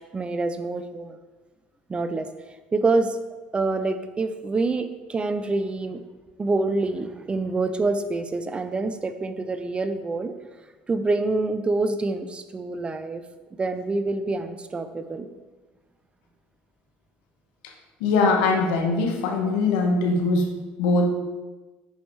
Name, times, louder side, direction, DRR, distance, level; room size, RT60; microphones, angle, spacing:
voice 1, 0.1-1.2 1.9-2.3 2.7-3.2 3.5-6.0 6.4-10.3 10.9-13.2 13.6-15.3, right 3 dB, 25° right, 10 dB, 0.7 m, -26 dB
voice 2, 18.0-21.1, left 3 dB, 80° left, 3 dB, 1.3 m, -22 dB
7.8 x 5.2 x 4.8 m, 1.2 s
hypercardioid pair, 75°, 4 cm